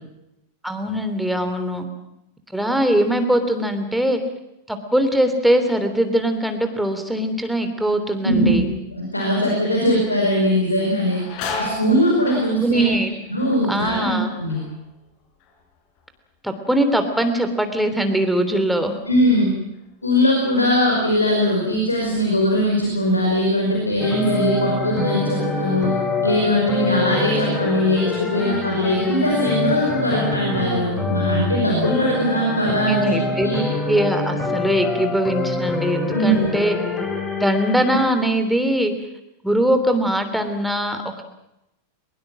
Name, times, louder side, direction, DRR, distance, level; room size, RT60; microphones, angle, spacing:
voice 1, 0.6-1.8 2.5-4.2 4.7-8.7 12.6-13.1 13.7-14.3 16.4-19.0 32.9-33.5 33.9-36.8 37.4-38.9 39.4-41.2, right 1 dB, ahead, 7 dB, 3.2 m, -21 dB
voice 2, 8.2-8.6 8.9-11.2 11.6-12.9 13.3-14.6 19.1-19.6 20.0-25.9 26.2-33.1 33.4-33.6 36.1-36.5, equal, 85° left, 0 dB, 5.2 m, -20 dB
sound 1, 10.0-10.3 10.6-16.2 16.5-17.1 17.6-20.5 20.8-21.0 21.9-22.1 22.6-23.7 24.1-24.3 24.9-25.5 25.9-27.0, left 3 dB, 45° left, 5.1 m, -37 dB
sound 2, 24.0-38.1, left 3 dB, 20° left, 4.4 m, -25 dB
23.0 x 21.5 x 7.6 m, 0.87 s
figure-of-eight pair, 90°, 0 cm